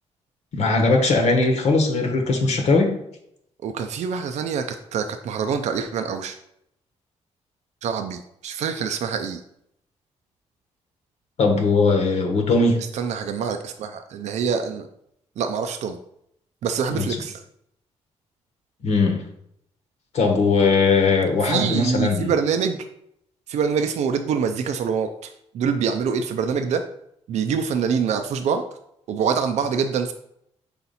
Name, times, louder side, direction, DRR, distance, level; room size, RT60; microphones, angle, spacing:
voice 1, 0.5-2.9 11.4-12.8 16.9-17.0 18.8-19.2 20.1-22.3, left 3 dB, 70° left, 2 dB, 1.2 m, -19 dB
voice 2, 3.6-6.4 7.8-9.4 12.8-14.9 15.4-16.0 16.6-17.4 21.4-22.8 23.5-26.8 27.3-28.6 29.1-30.1, right 6 dB, 70° right, 7 dB, 0.5 m, -25 dB
5.6 x 4.2 x 4.1 m, 0.75 s
cardioid pair, 90°, 12 cm